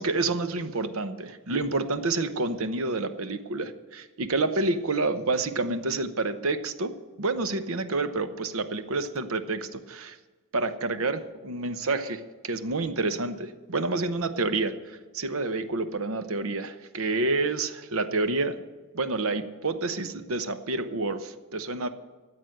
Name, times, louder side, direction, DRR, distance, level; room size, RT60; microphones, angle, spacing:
voice 1, 0.0-10.2 10.5-18.6 18.9-21.9, right 3 dB, 75° right, 10 dB, 0.9 m, -29 dB
14.0 x 8.0 x 7.8 m, 1.3 s
head